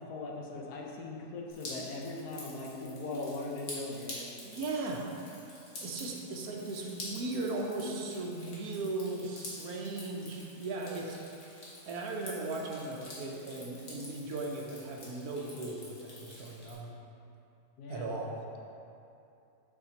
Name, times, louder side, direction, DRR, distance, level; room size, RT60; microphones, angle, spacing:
voice 1, 0.0-4.3 17.8-18.1, left 2 dB, 85° left, -1 dB, 1.3 m, -40 dB
Drip, 1.5-16.7, left 2 dB, 60° left, 1.6 m, -48 dB
voice 2, 4.4-5.1 5.8-11.2 11.8-16.9 17.9-18.4, right 2 dB, 80° right, 0 dB, 1.2 m, -37 dB
7.1 x 5.8 x 2.8 m, 2.7 s
omnidirectional pair, 1.6 m